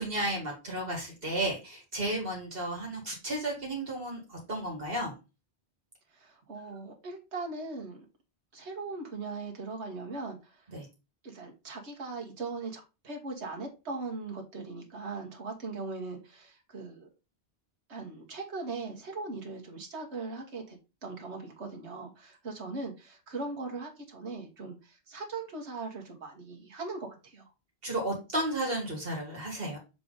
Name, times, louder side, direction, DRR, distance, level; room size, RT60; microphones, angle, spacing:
voice 1, 0.0-5.1 10.7-10.9 27.8-29.8, right 1 dB, 60° right, -1 dB, 2.1 m, -33 dB
voice 2, 6.1-8.0 8.5-10.6 11.2-17.1 17.9-27.5, right 3 dB, 85° right, 2 dB, 1.7 m, -39 dB
6.7 x 3.7 x 3.8 m, 0.28 s
omnidirectional pair, 1.1 m